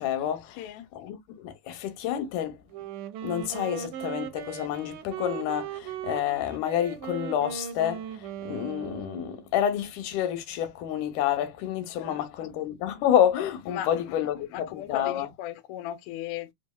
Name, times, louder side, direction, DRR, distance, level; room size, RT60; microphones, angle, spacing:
voice 1, 0.0-0.6 0.9-2.6 3.2-15.3, left 10 dB, 90° left, 2.3 m, -29 dB
voice 2, 0.6-0.9 12.0-12.5 13.7-14.2 14.5-16.5, left 12 dB, 75° left, 1.9 m, -37 dB
Wind instrument woodwind instrument, 2.7-9.5, right 9 dB, 85° right, 2.2 m, -38 dB
5.2 x 3.1 x 2.2 m
omnidirectional pair, 3.6 m